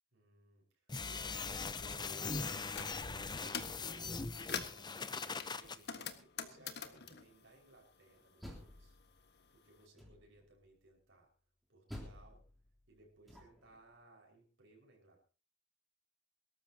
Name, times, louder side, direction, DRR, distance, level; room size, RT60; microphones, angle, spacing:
voice 1, 0.1-0.7 1.0-9.0 9.5-11.3 11.7-12.4 12.9-15.2, right 2 dB, 65° right, 0 dB, 5.2 m, -62 dB
sound 1, 0.9-5.8, left 4 dB, 20° left, 0.7 m, -41 dB
sound 2, 2.4-2.9 3.3-3.8 4.2-4.8 5.4-8.3 8.6-9.7, left 7 dB, 55° left, 1.5 m, -45 dB
Door, 8.2-9.4 10.0-10.5 11.9-13.8, left 1 dB, ahead, 3.4 m, -52 dB
23.5 x 13.5 x 2.9 m, 0.35 s
head